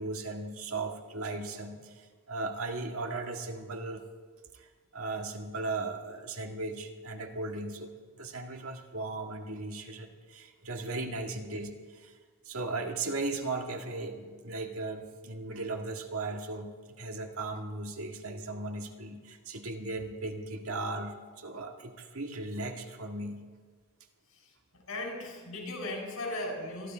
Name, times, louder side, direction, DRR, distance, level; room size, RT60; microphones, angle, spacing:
voice 1, 0.0-4.0 4.5-12.1 12.5-23.4, right 2 dB, 80° right, 3 dB, 1.8 m, -37 dB
voice 2, 24.3-26.9, left 1 dB, 85° left, -1 dB, 5.9 m, -38 dB
22.5 x 13.5 x 4.5 m, 1.5 s
head